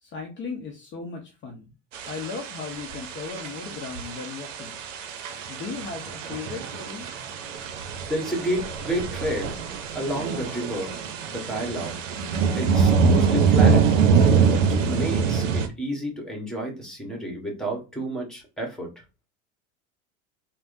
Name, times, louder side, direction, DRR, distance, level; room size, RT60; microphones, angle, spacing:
voice 1, 0.0-1.7 2.0-4.8 5.5-7.1, left 5 dB, 30° left, 2 dB, 0.6 m, -36 dB
sound 1, 1.9-15.7, right 5 dB, 75° right, 0.7 m, -24 dB
voice 2, 8.1-9.5 9.9-10.9 11.3-11.9 12.6-14.0 14.3-14.4 14.9-18.9, right 1 dB, ahead, 2 dB, 1.3 m, -30 dB
3.3 x 2.1 x 2.6 m, 0.29 s
hypercardioid pair, 85°, 38 cm